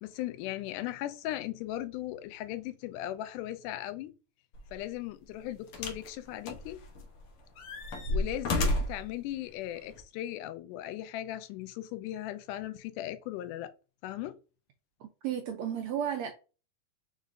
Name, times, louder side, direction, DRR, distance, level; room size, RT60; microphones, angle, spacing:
voice 1, 0.0-4.1 4.7-6.8 8.1-13.7 14.0-14.4, left 13 dB, 85° left, 2.1 m, -37 dB
sound 1, 4.5-4.7 5.7-6.1 6.5-7.2 7.6-9.1 9.9-10.0, left 1 dB, 70° left, 1.3 m, -31 dB
voice 2, 15.2-16.3, right 9 dB, 85° right, 1.5 m, -32 dB
5.1 x 3.9 x 2.5 m
omnidirectional pair, 3.6 m